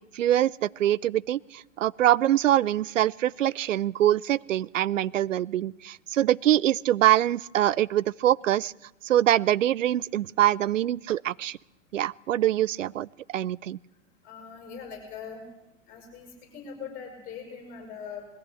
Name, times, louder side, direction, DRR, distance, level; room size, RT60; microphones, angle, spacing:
voice 1, 0.1-8.7 9.0-11.6 11.9-13.8, right 12 dB, 70° right, 23 dB, 0.6 m, -24 dB
voice 2, 14.2-15.4 15.9-18.3, left 6 dB, 20° left, 2 dB, 6.4 m, -41 dB
20.5 x 15.0 x 8.5 m, 0.96 s
hypercardioid pair, 115°, 39 cm